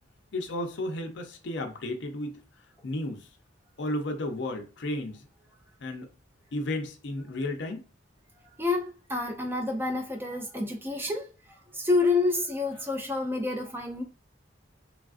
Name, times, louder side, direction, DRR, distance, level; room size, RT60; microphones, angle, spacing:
voice 1, 0.3-2.4 2.8-3.3 3.8-5.3 5.8-6.1 6.5-7.8, left 1 dB, 65° left, 0.5 m, -33 dB
voice 2, 8.6-11.3 11.7-14.0, left 3 dB, 10° right, 0.4 m, -28 dB
3.2 x 2.4 x 2.4 m
head